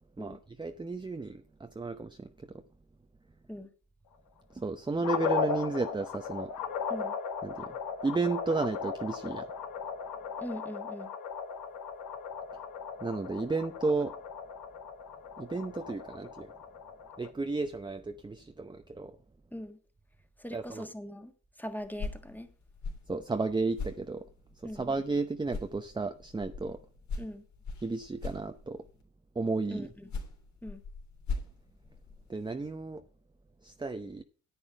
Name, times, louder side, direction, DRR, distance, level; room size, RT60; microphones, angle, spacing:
voice 1, 0.2-2.5 4.5-6.5 7.4-7.8 8.0-9.5 13.0-14.1 15.4-16.5 17.2-19.2 20.5-20.9 23.1-24.3 24.6-26.8 27.8-28.8 29.3-29.9 32.3-33.0 33.6-34.2, right 3 dB, 15° right, 0.7 m, -33 dB
sound 1, 5.0-17.3, left 6 dB, 85° left, 1.7 m, -37 dB
voice 2, 10.4-11.1 19.5-19.8 20.4-21.3 21.6-22.5 24.6-24.9 27.2-27.4 29.7-30.1 30.6-30.8, equal, 5° left, 1.5 m, -41 dB
sound 2, 21.8-25.2 25.5-29.0 29.8-32.5, left 4 dB, 65° left, 3.2 m, -41 dB
10.0 x 8.5 x 4.5 m
cardioid pair, 90°, 30 cm